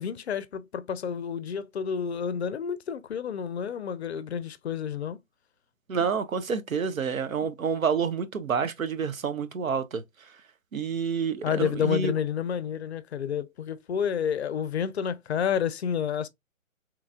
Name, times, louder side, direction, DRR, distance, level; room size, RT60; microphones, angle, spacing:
voice 1, 0.0-5.2 11.4-16.3, left 8 dB, 55° left, 0.5 m, -30 dB
voice 2, 5.9-10.0 10.7-12.1, right 6 dB, 85° right, 0.8 m, -28 dB
3.1 x 2.4 x 3.5 m
figure-of-eight pair, 140°, 40 cm